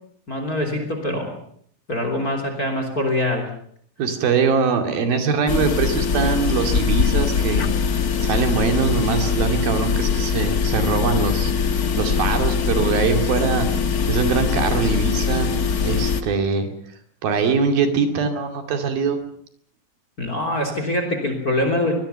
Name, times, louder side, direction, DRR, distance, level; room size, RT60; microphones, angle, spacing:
voice 1, 0.3-1.3 1.9-3.5 20.2-22.0, left 1 dB, 25° left, 6 dB, 3.4 m, -24 dB
voice 2, 4.0-7.7 8.2-11.5 12.0-13.7 14.1-15.5 15.8-16.7 17.2-19.2, right 5 dB, 85° right, 6 dB, 4.3 m, -22 dB
sound 1, 5.5-16.2, left 6 dB, 70° left, 0.8 m, -22 dB
24.0 x 20.0 x 6.9 m, 0.63 s
omnidirectional pair, 4.1 m